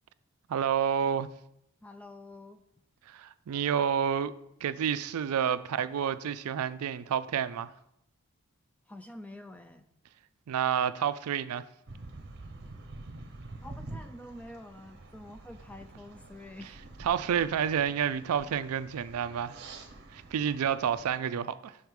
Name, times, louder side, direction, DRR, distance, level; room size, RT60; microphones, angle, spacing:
voice 1, 0.5-1.3 3.1-4.3 4.6-7.7 10.5-11.6 17.0-19.6 20.1-21.8, right 8 dB, 85° right, 0.4 m, -29 dB
voice 2, 1.8-2.6 8.9-9.9 13.6-16.8, left 1 dB, 5° left, 0.4 m, -47 dB
sound 1, 11.9-21.2, right 2 dB, 50° right, 0.7 m, -47 dB
6.4 x 4.6 x 5.2 m
head